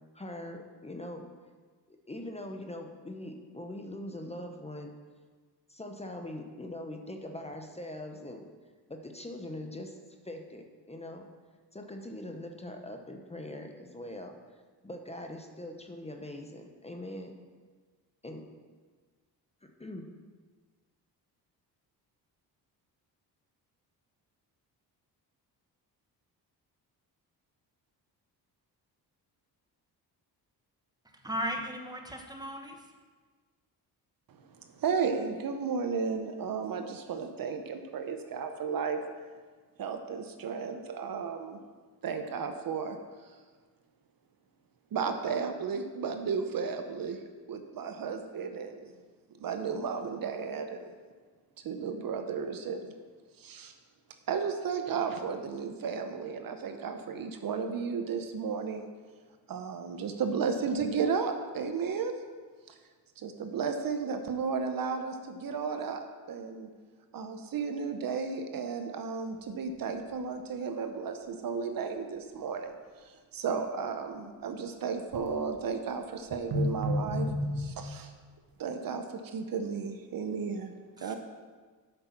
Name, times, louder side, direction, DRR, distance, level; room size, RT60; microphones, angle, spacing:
voice 1, 0.1-1.3 1.9-4.9 5.7-8.5 8.9-10.0 10.2-11.3 11.7-14.3 14.8-17.4 18.2-18.5 19.6-20.1, left 1 dB, 15° left, 3 dB, 0.9 m, -42 dB
voice 2, 31.2-32.8 81.0-81.2, equal, 10° right, 3 dB, 1.3 m, -36 dB
voice 3, 34.3-39.0 39.8-41.6 42.0-43.0 44.9-47.2 47.5-48.9 49.4-50.9 51.6-52.9 53.4-53.7 54.3-58.9 59.5-62.1 62.7-62.8 63.2-66.7 67.1-72.7 73.0-77.3 77.6-78.1 78.6-80.7 81.0-81.1, right 5 dB, 60° right, 7 dB, 0.9 m, -34 dB
sound 1, 69.8-69.9 70.2-70.3 75.1-75.6 76.3-78.0, left 1 dB, 75° right, 1.4 m, -31 dB
8.0 x 6.8 x 5.8 m, 1.5 s
cardioid pair, 90°, 40 cm